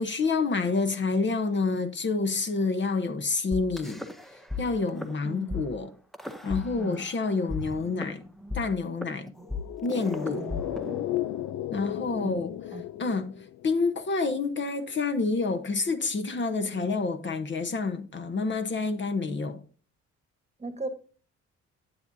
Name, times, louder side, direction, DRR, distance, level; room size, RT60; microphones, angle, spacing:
voice 1, 0.0-4.0 4.6-5.9 6.4-8.2 8.5-9.3 9.8-10.5 11.7-12.6 13.0-13.3 13.6-19.6, left 4 dB, 40° left, 0.9 m, -28 dB
sound 1, 3.5-4.6 4.9-5.1 5.5-5.6 6.1-7.1 7.5-11.5, left 3 dB, ahead, 0.7 m, -36 dB
voice 2, 5.2-5.6 6.7-7.0 9.4-9.5 10.2-10.6 12.1-12.4 12.7-12.8 16.7-17.2 20.6-20.9, right 3 dB, 20° right, 1.2 m, -39 dB
sound 2, 9.5-14.0 14.3-14.4, left 13 dB, 70° left, 0.5 m, -35 dB
9.8 x 8.3 x 2.7 m
cardioid pair, 90°, 30 cm